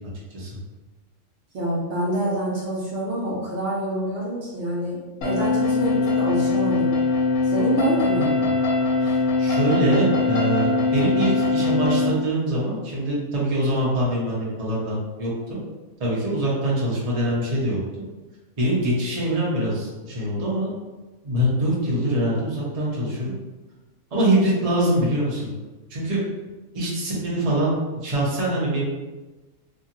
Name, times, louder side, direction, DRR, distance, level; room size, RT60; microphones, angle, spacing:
voice 1, 1.5-6.9 7.4-8.3, right 1 dB, 65° right, -5 dB, 1.0 m, -27 dB
sound 1, 5.2-12.1, left 3 dB, 80° left, 1.0 m, -22 dB
voice 2, 8.2-8.5 9.0-15.6 16.0-17.8 18.6-20.7 21.2-23.3 24.1-25.5 25.9-26.2 26.7-27.8 28.0-28.8, right 1 dB, 35° right, -6 dB, 0.8 m, -24 dB
2.8 x 2.7 x 2.5 m, 1.2 s
omnidirectional pair, 1.3 m